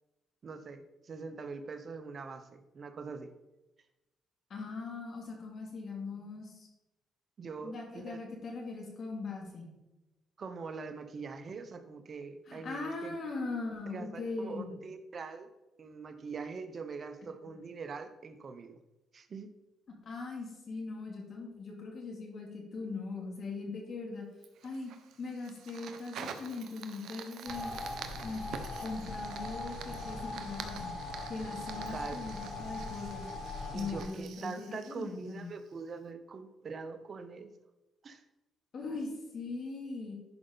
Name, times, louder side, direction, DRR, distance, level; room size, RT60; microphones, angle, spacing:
voice 1, 0.4-3.3 7.4-8.2 10.4-13.2 13.9-15.5 15.8-18.8 19.1-19.5 31.7-32.2 33.7-37.5 38.0-38.2, right 4 dB, 45° right, 9 dB, 0.9 m, -43 dB
voice 2, 4.5-6.7 7.6-9.7 12.5-14.7 20.0-24.2 24.6-24.9 25.2-27.7 28.2-28.4 28.8-31.0 31.3-33.3 33.7-35.5 38.7-40.1, left 3 dB, 55° left, 0 dB, 2.6 m, -40 dB
Fire, 24.4-35.8, right 7 dB, 75° right, 0.8 m, -47 dB
sound 1, 27.4-34.0, left 2 dB, 80° left, 3.0 m, -40 dB
11.0 x 5.1 x 4.0 m, 1.0 s
cardioid pair, 90°, 0 cm